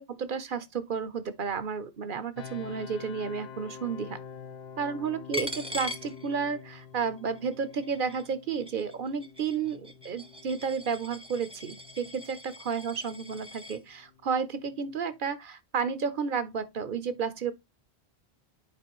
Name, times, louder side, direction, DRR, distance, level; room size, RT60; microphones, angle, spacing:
voice 1, 0.0-4.2 4.8-17.5, right 6 dB, 55° right, 1.0 m, -32 dB
sound 1, 2.4-15.2, left 7 dB, 75° left, 1.1 m, -48 dB
Coin (dropping), 5.3-6.8 7.2-13.8, left 2 dB, 5° right, 0.7 m, -42 dB
10.0 x 4.9 x 3.0 m
omnidirectional pair, 1.1 m